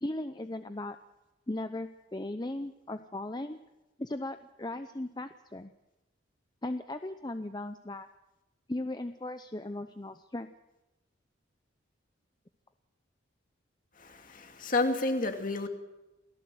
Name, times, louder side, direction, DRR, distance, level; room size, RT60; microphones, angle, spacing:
voice 1, 0.0-1.0 1.5-3.6 4.0-5.7 6.6-8.1 8.7-10.5, left 1 dB, 20° left, 9 dB, 0.7 m, -37 dB
voice 2, 14.0-15.7, left 2 dB, 40° left, 5 dB, 2.5 m, -30 dB
28.0 x 17.5 x 7.9 m, 1.0 s
head